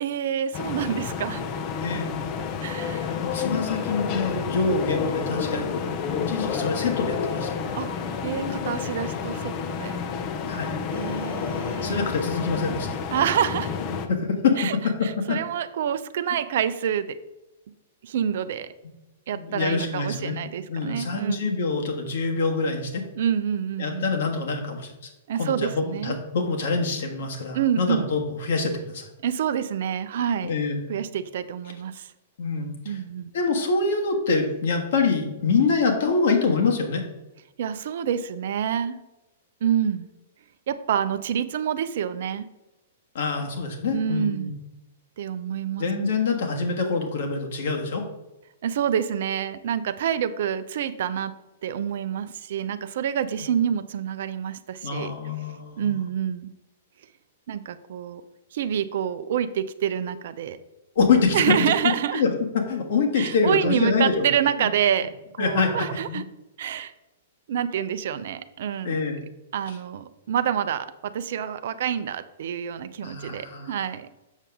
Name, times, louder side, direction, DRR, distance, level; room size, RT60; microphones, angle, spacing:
voice 1, 0.0-1.4 2.4-3.1 7.7-7.9 8.2-10.0 10.9-12.0 13.1-13.7 14.6-14.8 15.0-17.2 18.0-18.7 19.3-21.5 23.1-24.1 25.3-26.2 27.5-28.1 29.2-30.5 30.9-32.1 32.8-33.3 37.6-39.0 39.6-40.1 40.7-42.4 43.9-44.5 45.2-45.9 48.6-51.3 51.6-55.1 55.8-56.5 57.5-58.2 58.5-60.6 61.3-62.2 63.2-65.1 65.4-66.2 66.6-66.9 67.5-69.0 69.5-74.1, right 9 dB, 55° right, 12 dB, 0.5 m, -27 dB
sound 1, 0.5-14.1, left 6 dB, 35° left, 0.7 m, -29 dB
voice 2, 1.8-2.1 3.1-7.5 10.5-10.7 11.8-12.9 14.1-15.4 19.3-20.4 20.7-23.0 23.8-24.9 25.4-29.1 30.4-30.8 32.4-33.0 33.3-37.0 43.1-44.5 45.8-48.1 54.8-56.0 60.9-61.5 62.1-62.3 62.5-64.3 64.6-64.7 65.4-66.2 68.8-69.2 69.7-69.8 73.0-73.7, left 4 dB, 60° left, 2 dB, 1.6 m, -25 dB
7.3 x 6.7 x 3.6 m, 0.98 s
figure-of-eight pair, 105°, 0 cm